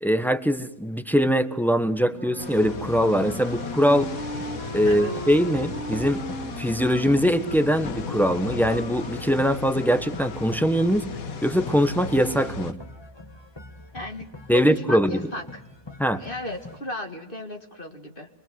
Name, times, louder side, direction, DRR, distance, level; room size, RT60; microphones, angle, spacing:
voice 1, 0.0-4.1 4.7-6.2 6.6-11.1 11.4-12.7 14.5-15.2 16.0-16.2, equal, ahead, 9 dB, 1.3 m, -22 dB
Wind instrument woodwind instrument, 2.1-8.3, right 2 dB, 65° right, 2.3 m, -38 dB
sound 1, 2.4-12.7, left 5 dB, 85° left, 1.8 m, -36 dB
sound 2, 2.6-16.8, left 2 dB, 20° left, 1.7 m, -43 dB
voice 2, 4.8-5.2 13.9-15.6 16.1-18.3, left 1 dB, 40° left, 3 dB, 2.1 m, -35 dB
26.0 x 23.0 x 7.7 m, 0.85 s
omnidirectional pair, 1.4 m